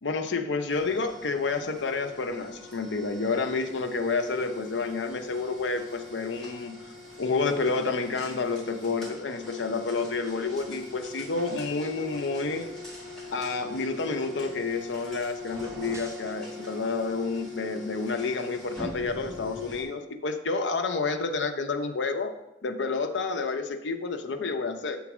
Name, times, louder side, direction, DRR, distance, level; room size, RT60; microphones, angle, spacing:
voice 1, 0.0-6.7 7.2-12.7 13.3-22.3 22.6-25.0, left 4 dB, 90° left, 6 dB, 0.6 m, -29 dB
sound 1, 0.7-19.8, left 3 dB, 5° left, 1.8 m, -42 dB
sound 2, 15.4-16.3, right 2 dB, 15° right, 0.4 m, -44 dB
7.1 x 3.9 x 6.0 m, 0.91 s
head